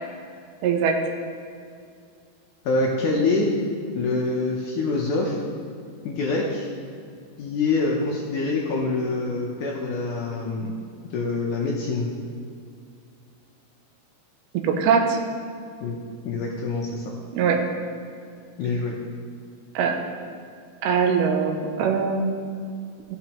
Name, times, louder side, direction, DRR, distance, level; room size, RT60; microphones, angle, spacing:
voice 1, 0.6-1.0 14.6-15.2 17.3-17.6 19.8-20.0 20.8-22.3, right 6 dB, 90° right, 4 dB, 2.8 m, -21 dB
voice 2, 2.7-3.5 3.9-5.4 6.0-6.7 7.4-10.7 11.1-12.1 15.8-16.0 16.2-17.1 18.6-18.9, left 3 dB, 75° left, -2 dB, 1.9 m, -25 dB
14.0 x 6.5 x 3.0 m, 2.3 s
omnidirectional pair, 4.4 m